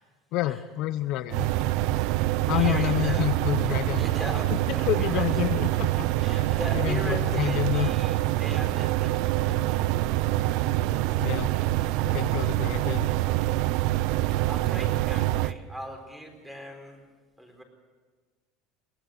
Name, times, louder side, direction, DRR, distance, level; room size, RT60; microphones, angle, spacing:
voice 1, 0.3-1.5 2.5-4.0 4.9-6.4 6.7-7.9 11.2-11.5 12.0-13.1, left 15 dB, 55° left, 11 dB, 0.8 m, -28 dB
sound 1, 1.3-15.5, right 16 dB, 65° right, 0.6 m, -25 dB
voice 2, 2.5-3.3 4.0-5.3 6.2-9.7 14.5-17.0 17.4-17.6, equal, 5° right, 3 dB, 4.5 m, -39 dB
22.5 x 19.0 x 8.0 m, 1.5 s
cardioid pair, 150°, 0 cm